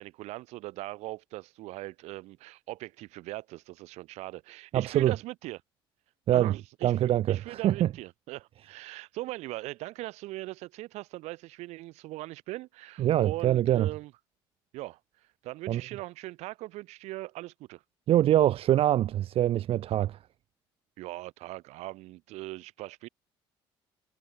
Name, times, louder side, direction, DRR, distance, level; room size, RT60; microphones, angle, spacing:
voice 1, 0.0-5.6 6.3-14.1 14.7-15.0 15.4-17.8 21.0-23.1, right 19 dB, 75° right, 2.1 m, -40 dB
voice 2, 4.7-5.1 6.3-6.6 6.8-7.9 13.0-13.9 15.7-15.8 18.1-20.2, right 12 dB, 55° right, 0.5 m, -24 dB
supercardioid pair, 70°, 11 cm